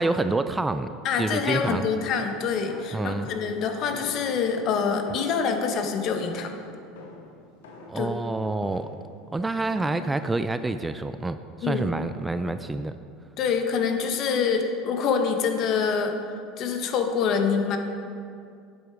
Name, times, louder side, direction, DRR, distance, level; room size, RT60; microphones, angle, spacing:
voice 1, 0.0-0.9 1.2-1.9 2.9-3.3 7.9-8.9 9.3-12.9, right 2 dB, 10° right, 10 dB, 0.3 m, -27 dB
voice 2, 1.0-6.5 7.9-8.1 11.6-11.8 13.4-16.2 16.6-17.8, left 6 dB, 50° left, 5 dB, 1.1 m, -25 dB
sound 1, 1.5-8.1 8.6-9.1 9.7-10.2, left 2 dB, 90° left, 1.3 m, -45 dB
8.1 x 7.7 x 4.9 m, 2.4 s
supercardioid pair, 110°, 0 cm